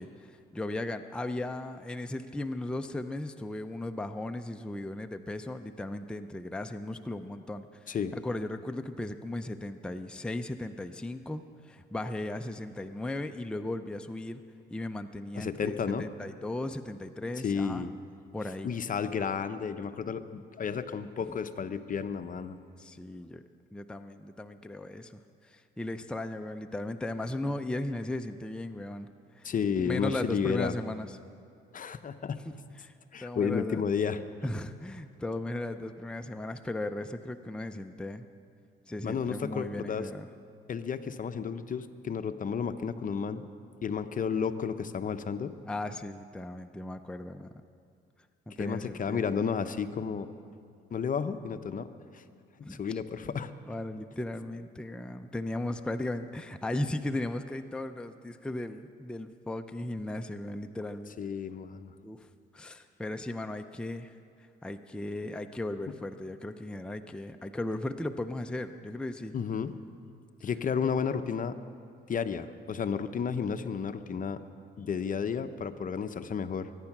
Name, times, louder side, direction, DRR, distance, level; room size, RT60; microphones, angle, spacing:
voice 1, 0.0-14.4 14.7-17.9 18.3-18.7 22.8-23.4 23.7-29.1 29.4-29.5 29.8-31.2 32.4-32.5 32.8-32.9 33.2-33.8 34.4-38.3 38.9-40.3 45.7-47.6 48.5-49.2 52.6-52.8 53.7-61.2 62.0-62.3 62.5-64.1 64.6-69.3, left 1 dB, 5° left, 7 dB, 0.6 m, -36 dB
voice 2, 15.4-16.1 17.4-17.9 18.6-22.6 29.4-30.7 31.7-32.4 33.1-34.2 39.0-40.1 40.7-43.4 43.8-45.5 48.6-50.3 50.9-51.9 52.1-52.2 52.7-53.5 61.2-61.9 69.3-69.8 70.4-71.6 72.1-74.4 74.8-76.7, left 6 dB, 45° left, 10 dB, 0.7 m, -32 dB
22.5 x 9.8 x 5.9 m, 2.3 s
cardioid pair, 90°, 20 cm